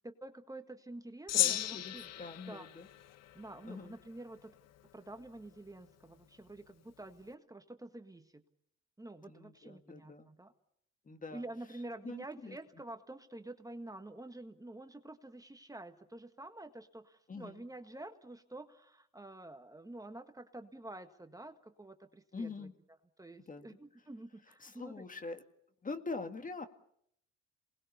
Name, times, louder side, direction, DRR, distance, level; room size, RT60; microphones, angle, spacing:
voice 1, 0.0-2.1 2.5-2.7 3.3-4.5 4.9-8.4 9.0-10.5 11.3-22.7 23.2-25.1, right 2 dB, 10° right, 7 dB, 1.7 m, -48 dB
Gong, 1.3-3.9, left 12 dB, 55° left, 1.0 m, -35 dB
voice 2, 1.3-2.9 3.7-4.0 9.3-10.3 11.1-11.4 12.0-12.6 17.3-17.6 22.3-22.7 23.5-23.8 24.6-25.4 25.8-26.7, left 3 dB, 25° left, 8 dB, 2.0 m, -44 dB
28.0 x 20.0 x 7.0 m, 0.71 s
hypercardioid pair, 65°, 30 cm